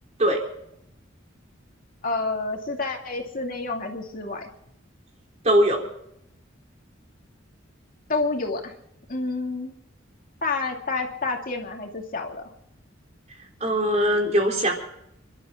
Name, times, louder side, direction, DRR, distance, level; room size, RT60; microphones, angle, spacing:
voice 1, 2.0-4.5 8.1-8.7 9.1-9.7 10.4-12.5, left 3 dB, 45° left, 2 dB, 2.5 m, -29 dB
voice 2, 5.4-5.8 13.6-14.7, equal, 35° right, 1 dB, 3.7 m, -21 dB
28.5 x 12.5 x 3.7 m, 0.76 s
head